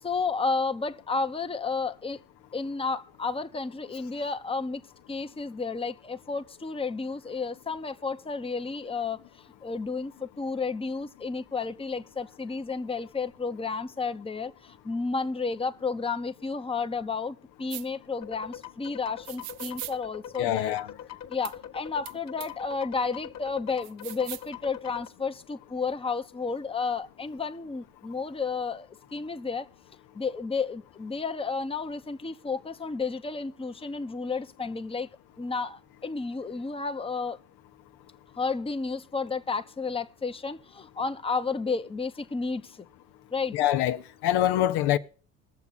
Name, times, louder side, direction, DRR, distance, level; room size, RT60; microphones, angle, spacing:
voice 1, 0.0-2.2 2.5-4.8 5.1-20.7 21.3-29.7 30.1-35.1 35.4-37.4 38.3-42.8 43.3-43.6, left 4 dB, 15° left, 0.9 m, -32 dB
sound 1, 17.7-17.9 19.2-19.9 21.4-21.5 22.1-22.2 22.4-22.5 23.8-24.5, right 18 dB, 60° right, 0.6 m, -39 dB
sound 2, 18.2-25.1, left 10 dB, 40° left, 1.3 m, -43 dB
voice 2, 20.4-20.9 43.5-45.0, left 12 dB, 65° left, 0.9 m, -25 dB
21.0 x 7.1 x 4.0 m
hypercardioid pair, 75°, 42 cm